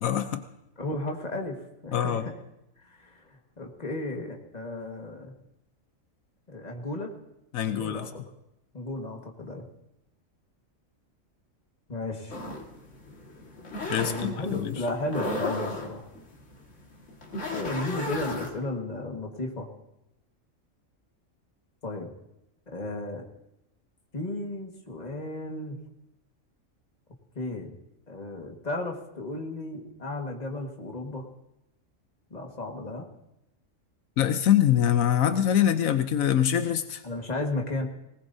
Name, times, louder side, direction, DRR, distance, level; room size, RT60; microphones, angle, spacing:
voice 1, 0.0-0.4 1.9-2.2 7.5-8.1 13.9-14.8 34.2-37.0, left 10 dB, 85° left, 9 dB, 1.2 m, -24 dB
voice 2, 0.8-1.6 1.8-2.3 2.8-5.3 6.5-7.1 7.6-8.1 8.7-9.6 11.9-12.4 14.0-16.1 17.5-19.7 21.8-22.1 22.7-23.3 24.1-25.8 27.4-27.7 28.1-31.3 32.3-33.1 37.0-37.9, left 2 dB, 30° left, 1 dB, 1.8 m, -34 dB
sound 1, 12.3-18.5, left 2 dB, 65° left, 2.2 m, -35 dB
19.5 x 19.0 x 2.7 m, 0.86 s
omnidirectional pair, 1.4 m